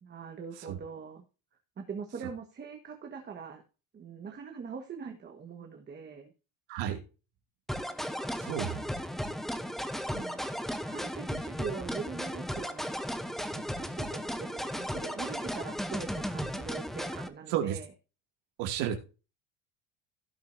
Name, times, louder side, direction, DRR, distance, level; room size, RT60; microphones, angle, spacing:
voice 1, 0.0-1.2 1.8-3.6 3.9-6.3 8.2-8.9 10.1-10.4 10.8-13.1 13.4-17.9, right 6 dB, 25° right, 4 dB, 1.5 m, -42 dB
voice 2, 6.7-7.0 8.4-8.8 17.5-17.8 18.6-19.0, right 10 dB, 75° right, 4 dB, 2.5 m, -32 dB
sound 1, 7.7-17.3, equal, ahead, 0.8 m, -35 dB
16.5 x 6.6 x 2.7 m, 0.32 s
cardioid pair, 145°, 43 cm